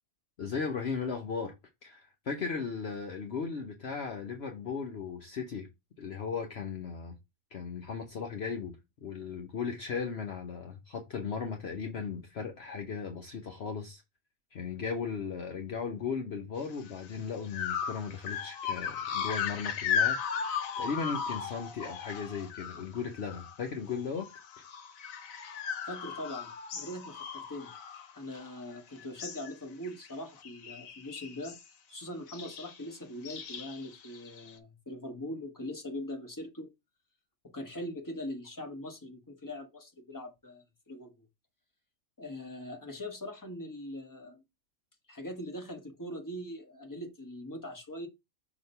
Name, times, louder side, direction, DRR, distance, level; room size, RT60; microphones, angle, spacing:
voice 1, 0.4-1.5 1.8-5.7 6.0-7.2 7.5-14.0 14.5-24.3 24.6-24.7, left 5 dB, 55° left, 1.0 m, -37 dB
sound 1, 16.9-17.0 17.5-23.6 23.9-28.7 29.0-29.5 29.8-30.1 30.4-31.7 32.3-32.8 33.3-34.5, left 7 dB, 85° left, 1.2 m, -36 dB
voice 2, 25.8-27.7 28.1-31.6 31.9-36.7 37.5-41.1 42.2-44.4 45.1-48.1, left 1 dB, 15° left, 1.3 m, -41 dB
6.2 x 2.9 x 5.4 m
omnidirectional pair, 1.4 m